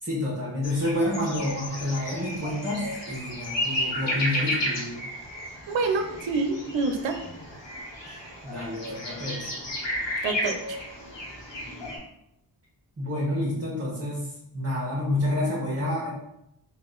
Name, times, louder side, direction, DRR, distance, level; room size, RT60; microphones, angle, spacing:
voice 1, 0.0-5.0 8.0-9.5 13.0-14.3 14.5-16.1, left 1 dB, 30° right, -7 dB, 1.2 m, -29 dB
sound 1, 0.6-12.0, left 1 dB, 70° left, 1.2 m, -33 dB
voice 2, 5.7-7.2 10.2-10.8, right 3 dB, 85° right, 6 dB, 0.6 m, -27 dB
3.8 x 2.5 x 3.8 m, 0.83 s
cardioid pair, 50°, 45 cm